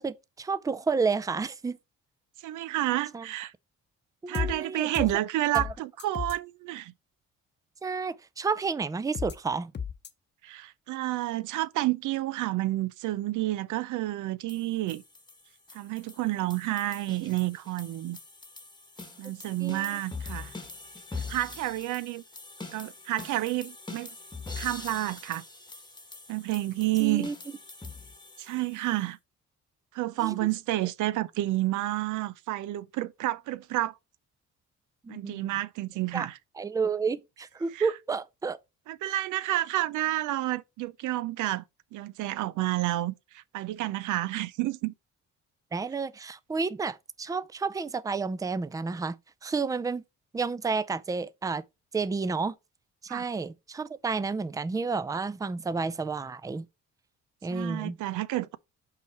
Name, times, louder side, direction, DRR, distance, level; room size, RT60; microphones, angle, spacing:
voice 1, 0.0-1.8 3.1-3.3 4.2-5.1 5.5-5.6 7.8-9.7 19.6-20.0 27.0-27.4 30.2-30.4 35.0-35.5 36.1-36.3 36.6-38.6 39.1-39.2 45.7-50.0 50.3-51.6 51.9-52.6 53.0-56.7 57.4-58.0, right 4 dB, 10° right, 0.4 m, -31 dB
voice 2, 2.4-3.5 4.3-6.9 10.4-15.0 15.7-18.2 19.2-20.5 21.3-22.2 22.7-24.1 24.6-25.4 26.3-27.3 28.4-29.2 29.9-34.0 35.1-36.4 37.7-37.9 38.9-41.6 41.9-44.9 53.1-53.3 57.5-58.6, right 16 dB, 80° right, 0.5 m, -30 dB
sound 1, 4.3-4.5 4.9-5.1 5.5-5.7 6.0-6.3 9.1-9.3 9.7-10.1, left 7 dB, 35° left, 0.8 m, -32 dB
sound 2, 14.5-29.0, left 3 dB, 15° left, 1.2 m, -43 dB
5.7 x 4.8 x 4.5 m
cardioid pair, 90°, 30 cm